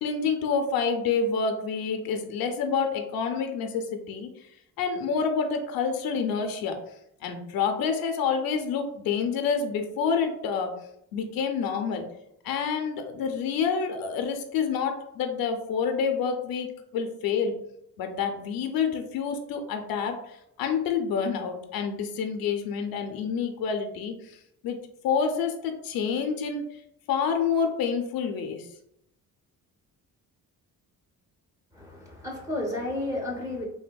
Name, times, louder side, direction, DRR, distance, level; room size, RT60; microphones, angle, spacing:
voice 1, 0.0-4.3 4.8-6.7 7.2-10.7 11.1-12.1 12.4-17.5 18.0-24.4 24.6-24.8 25.0-26.7 27.1-28.7, left 6 dB, 75° left, 5 dB, 0.5 m, -28 dB
voice 2, 31.7-33.6, left 1 dB, 10° right, -2 dB, 0.5 m, -32 dB
3.3 x 2.1 x 2.2 m, 0.78 s
cardioid pair, 150°, 36 cm